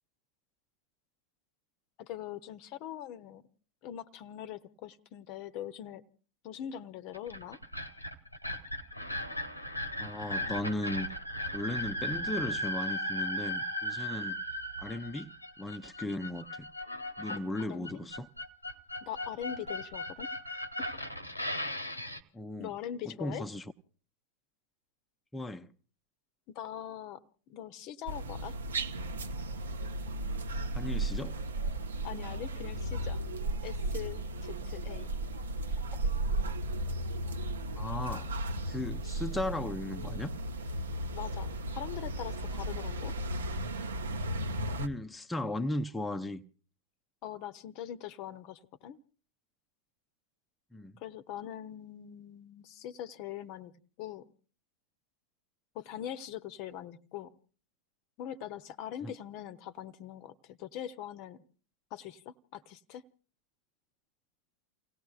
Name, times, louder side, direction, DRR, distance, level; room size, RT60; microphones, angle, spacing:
voice 1, 2.0-3.4 3.8-6.0 6.4-7.6 17.3-17.9 19.0-20.3 20.8-21.0 22.6-23.4 26.5-27.2 27.5-28.6 32.0-33.2 33.6-35.1 41.1-43.1 47.2-49.0 51.0-53.7 54.0-54.3 55.7-57.3 58.2-61.4 61.9-63.0, left 11 dB, 40° left, 0.8 m, -42 dB
sound 1, 7.1-22.2, equal, 85° left, 1.0 m, -37 dB
voice 2, 10.0-11.1 11.5-14.4 14.8-16.7 17.2-18.3 22.3-22.7 23.1-23.6 25.3-25.7 30.7-31.4 37.8-38.3 38.7-40.3 44.8-46.4 50.7-50.9 59.0-59.1, left 1 dB, 5° left, 0.7 m, -36 dB
sound 2, 28.1-44.9, right 1 dB, 70° right, 0.9 m, -35 dB
30.0 x 17.5 x 2.4 m
figure-of-eight pair, 90°, 0 cm